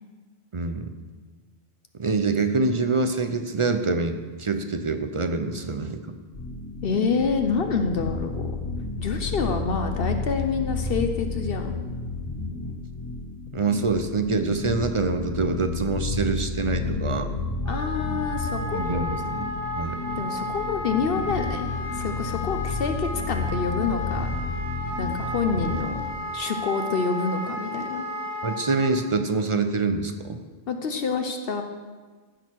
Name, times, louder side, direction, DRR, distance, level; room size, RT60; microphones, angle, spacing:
voice 1, 0.5-0.9 2.0-6.1 13.5-17.3 18.7-19.5 19.8-20.0 28.4-30.4, right 3 dB, 35° right, 7 dB, 0.5 m, -25 dB
sound 1, 6.3-26.1, left 3 dB, 90° left, 2.1 m, -31 dB
voice 2, 6.8-8.6 9.0-11.8 17.7-19.0 20.2-21.7 21.9-24.3 25.0-26.0 26.3-28.0 30.7-31.6, left 5 dB, 60° left, 5 dB, 0.9 m, -27 dB
Wind instrument woodwind instrument, 17.6-29.0, left 1 dB, 80° right, 3.1 m, -33 dB
15.5 x 6.3 x 4.6 m, 1.4 s
omnidirectional pair, 1.1 m